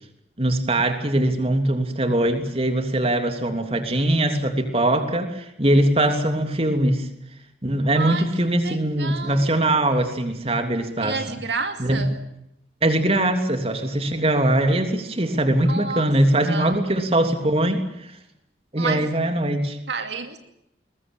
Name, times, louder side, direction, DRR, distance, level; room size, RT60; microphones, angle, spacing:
voice 1, 0.4-7.1 7.6-11.2 11.8-12.0 12.8-18.1 18.7-19.8, right 1 dB, 35° right, 7 dB, 3.1 m, -21 dB
voice 2, 7.9-9.7 11.0-12.2 15.7-16.1 16.4-16.8 18.8-19.1 19.9-20.4, right 4 dB, 70° right, 6 dB, 2.5 m, -30 dB
22.0 x 21.5 x 8.9 m, 0.78 s
head